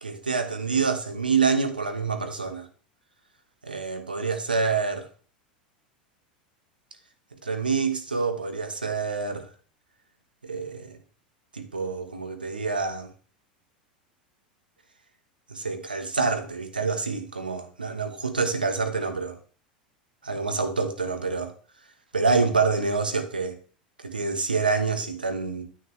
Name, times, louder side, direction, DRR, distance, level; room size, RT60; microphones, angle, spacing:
voice 1, 0.0-2.7 3.6-5.1 7.4-9.5 10.4-11.0 11.5-13.1 15.5-19.4 20.2-21.5 22.1-23.6 24.0-25.6, right 4 dB, 90° right, 1.1 m, -27 dB
9.5 x 8.6 x 3.2 m
figure-of-eight pair, 85°, 5 cm